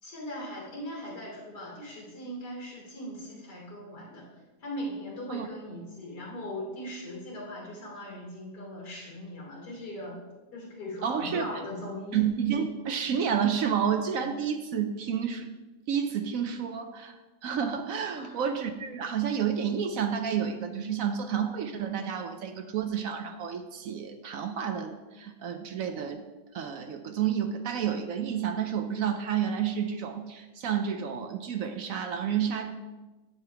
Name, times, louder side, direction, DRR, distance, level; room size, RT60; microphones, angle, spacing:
voice 1, 0.0-4.2 4.6-10.2 10.5-12.3 18.2-18.4, equal, 60° left, -4 dB, 3.5 m, -39 dB
voice 2, 11.0-11.5 12.1-15.5 15.9-17.1 17.4-26.2 26.5-32.7, right 8 dB, 65° right, 7 dB, 0.8 m, -30 dB
10.0 x 7.7 x 3.4 m, 1.2 s
omnidirectional pair, 2.0 m